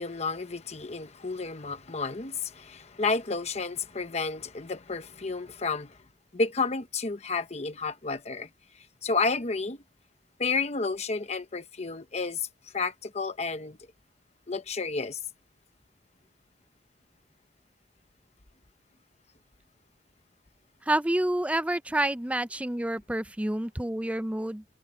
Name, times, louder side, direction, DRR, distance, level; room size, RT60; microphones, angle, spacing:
voice 1, 0.0-6.0 6.3-8.5 9.0-9.8 10.4-12.5 12.7-13.8 14.5-15.2, left 4 dB, 35° left, 1.0 m, -31 dB
voice 2, 20.9-24.6, right 1 dB, 5° right, 0.5 m, -28 dB
head